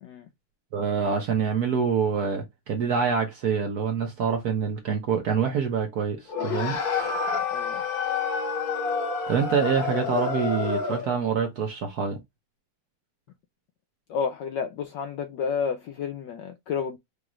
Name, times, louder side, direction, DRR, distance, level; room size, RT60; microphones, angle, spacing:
voice 1, 0.7-6.8 9.3-12.2, right 6 dB, 65° right, 1.0 m, -26 dB
sound 1, 6.3-11.2, left 5 dB, 50° left, 1.6 m, -28 dB
voice 2, 7.3-7.8 14.1-17.0, left 6 dB, 80° left, 1.0 m, -31 dB
5.0 x 2.3 x 3.0 m
omnidirectional pair, 2.4 m